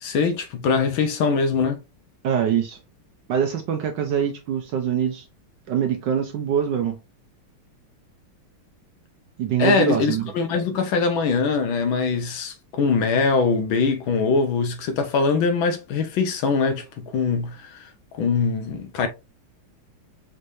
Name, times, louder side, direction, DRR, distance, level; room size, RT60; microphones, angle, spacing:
voice 1, 0.0-1.8 9.6-17.9 18.1-19.1, left 4 dB, 70° left, 1.5 m, -22 dB
voice 2, 2.2-2.8 3.3-5.2 5.7-7.0 9.4-10.2, right 8 dB, 70° right, 1.1 m, -23 dB
5.3 x 3.2 x 2.6 m
omnidirectional pair, 2.4 m